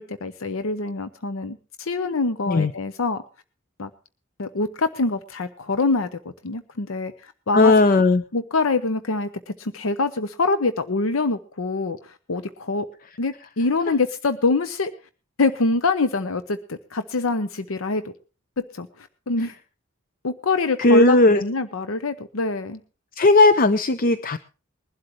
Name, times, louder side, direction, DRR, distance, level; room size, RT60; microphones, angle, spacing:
voice 1, 0.0-3.2 3.8-3.9 4.4-6.1 6.4-7.7 8.3-12.9 13.2-14.9 15.4-18.0 18.6-19.5 20.2-22.8, left 3 dB, 80° left, 11 dB, 0.8 m, -25 dB
voice 2, 7.5-8.2 20.8-21.4 23.2-24.4, left 2 dB, 45° left, 12 dB, 0.6 m, -16 dB
21.0 x 12.0 x 3.1 m, 0.34 s
head